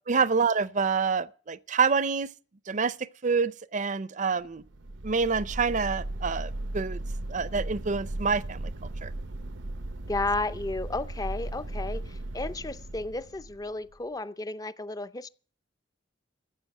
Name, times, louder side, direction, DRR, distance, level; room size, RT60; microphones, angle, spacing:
voice 1, 0.1-2.3 2.7-4.6 5.0-7.0 7.3-8.7 9.0-9.1, right 5 dB, 40° right, 0.6 m, -27 dB
sound 1, 4.6-13.9, right 1 dB, 90° right, 0.8 m, -36 dB
voice 2, 10.1-15.3, left 2 dB, 20° left, 0.5 m, -33 dB
14.5 x 8.0 x 7.8 m
head